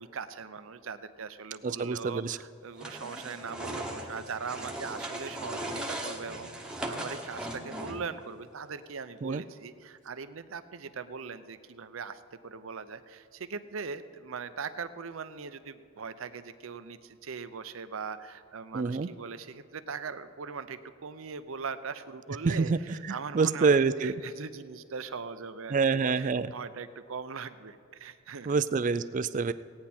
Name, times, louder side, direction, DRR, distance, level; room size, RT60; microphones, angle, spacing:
voice 1, 0.0-6.5 6.9-28.6, right 5 dB, 75° right, 11 dB, 0.6 m, -40 dB
voice 2, 1.6-2.4 9.2-9.4 18.7-19.1 22.4-22.8 23.1-24.1 25.7-26.5 28.5-29.5, right 4 dB, 35° right, 14 dB, 0.3 m, -26 dB
sound 1, 2.8-8.2, right 1 dB, 5° right, 1.1 m, -38 dB
17.0 x 9.6 x 4.4 m, 2.5 s
head